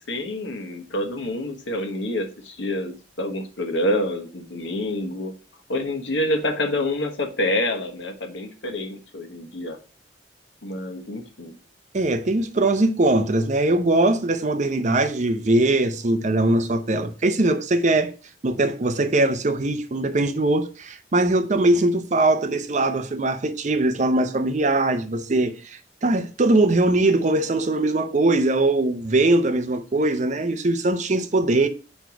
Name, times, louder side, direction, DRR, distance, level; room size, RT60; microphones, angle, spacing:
voice 1, 0.0-5.3 5.7-9.8 10.6-11.5, left 1 dB, 90° left, 1.3 m, -27 dB
voice 2, 11.9-18.1 18.4-31.7, right 2 dB, 40° right, 0.6 m, -21 dB
4.6 x 4.4 x 5.8 m
head